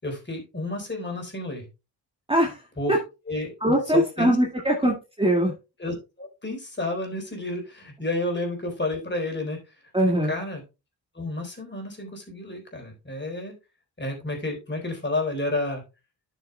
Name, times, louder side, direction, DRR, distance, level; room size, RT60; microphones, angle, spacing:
voice 1, 0.0-1.7 2.8-3.0 3.3-4.4 4.8-4.9 5.8-9.6 10.0-10.6 11.1-13.5 14.0-15.8, left 2 dB, 25° left, 2 dB, 4.1 m, -31 dB
voice 2, 2.3-2.6 2.9-3.0 3.6-5.5 9.9-10.3, right 1 dB, 10° right, 0 dB, 2.0 m, -22 dB
11.5 x 6.8 x 2.3 m, 0.27 s
supercardioid pair, 55°, 43 cm